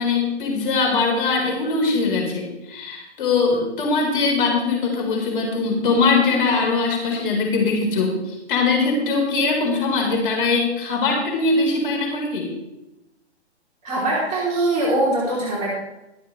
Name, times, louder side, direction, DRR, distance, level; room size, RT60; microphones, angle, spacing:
voice 1, 0.0-12.5, left 4 dB, 50° left, 1 dB, 4.2 m, -21 dB
voice 2, 13.8-15.7, right 1 dB, 20° right, -5 dB, 3.1 m, -22 dB
22.0 x 7.4 x 3.2 m, 0.98 s
hypercardioid pair, 140°, 34 cm